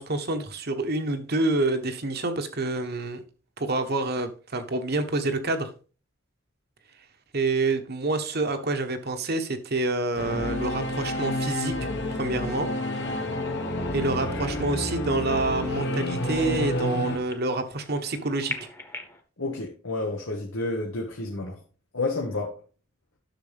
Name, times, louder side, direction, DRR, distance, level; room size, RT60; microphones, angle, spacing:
voice 1, 0.0-3.2 3.6-5.7 7.3-11.7 12.1-12.7 13.9-18.6, right 2 dB, 55° right, 1.2 m, -27 dB
Singing / Musical instrument, 10.2-17.2, left 1 dB, 60° left, 1.4 m, -29 dB
sound 1, 12.3-19.2, left 1 dB, 15° left, 1.1 m, -42 dB
voice 2, 19.4-21.6 21.9-22.6, left 2 dB, 80° left, 1.3 m, -30 dB
10.5 x 6.6 x 3.4 m
head